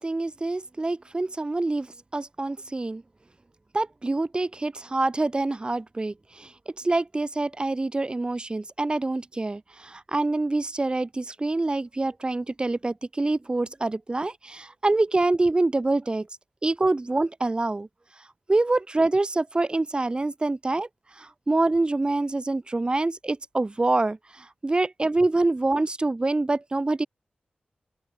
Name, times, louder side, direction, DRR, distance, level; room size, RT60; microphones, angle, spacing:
voice 1, 0.0-1.9 2.1-3.0 3.7-6.5 6.8-16.3 16.6-17.9 18.5-20.9 21.2-27.1, right 2 dB, 30° right, 3.2 m, -26 dB
open air
wide cardioid pair, 80°, 3 cm